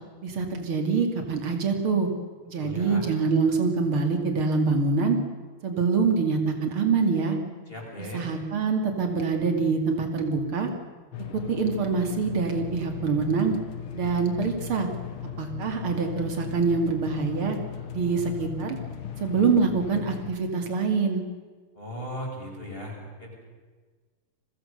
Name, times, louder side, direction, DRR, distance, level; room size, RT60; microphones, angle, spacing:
voice 1, 0.2-2.1 2.5-5.2 5.6-7.4 8.1-10.7 11.3-13.5 13.9-14.9 15.4-17.6 17.9-18.8 19.2-21.2, right 4 dB, 90° right, 4 dB, 3.4 m, -25 dB
voice 2, 2.6-3.0 7.7-8.2 21.7-23.3, equal, 25° left, -1 dB, 6.7 m, -37 dB
sound 1, 11.1-20.3, left 8 dB, 85° left, 2.3 m, -37 dB
29.5 x 22.5 x 6.7 m, 1.4 s
omnidirectional pair, 2.3 m